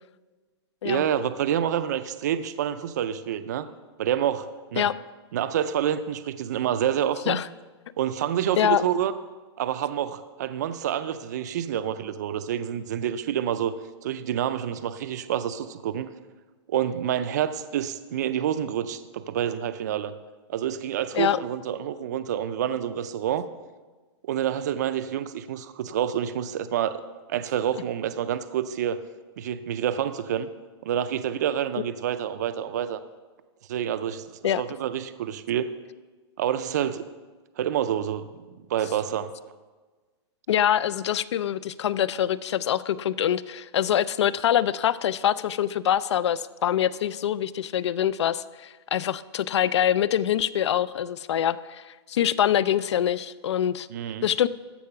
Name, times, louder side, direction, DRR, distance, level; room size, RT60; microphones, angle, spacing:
voice 1, 0.8-3.7 4.0-4.9 5.3-7.4 8.0-9.1 9.6-13.8 14.0-16.1 16.7-20.1 20.5-23.4 24.2-27.0 27.3-29.0 29.4-30.5 30.8-33.0 33.7-34.2 34.6-35.7 36.4-37.1 37.6-39.3 53.9-54.3, right 10 dB, 40° right, 12 dB, 0.4 m, -28 dB
voice 2, 40.5-53.9 54.2-54.5, left 10 dB, 90° left, 18 dB, 0.4 m, -24 dB
14.0 x 4.7 x 5.8 m, 1.3 s
hypercardioid pair, 180°, 14 cm